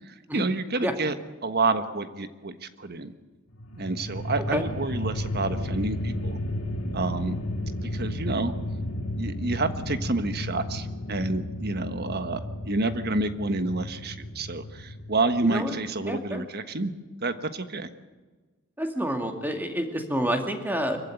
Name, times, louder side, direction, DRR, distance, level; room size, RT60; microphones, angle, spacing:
voice 1, 0.1-1.2 1.4-3.1 3.8-6.4 6.9-7.4 7.8-8.5 9.2-16.9 17.2-17.9, right 3 dB, 45° right, 10 dB, 1.4 m, -29 dB
sound 1, 3.5-15.9, left 1 dB, 70° left, 2.3 m, -33 dB
voice 2, 15.4-15.8 16.1-16.5 18.8-21.0, equal, 10° right, 4 dB, 2.4 m, -28 dB
24.5 x 15.0 x 9.2 m, 1.3 s
head